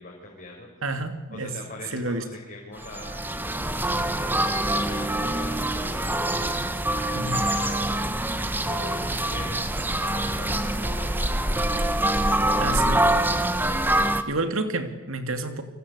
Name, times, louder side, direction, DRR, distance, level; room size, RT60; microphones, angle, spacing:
voice 1, 0.0-0.7 1.3-3.3 3.9-6.3 7.2-7.9 8.6-9.6 10.0-12.8, left 2 dB, 40° left, -1 dB, 5.3 m, -42 dB
voice 2, 0.8-1.5 1.9-2.2 7.1-7.5 12.6-13.0 14.0-15.6, right 2 dB, 65° right, 8 dB, 2.9 m, -29 dB
sound 1, 2.8-14.2, right 1 dB, 10° right, 1.4 m, -25 dB
29.5 x 24.0 x 8.4 m, 1.0 s
head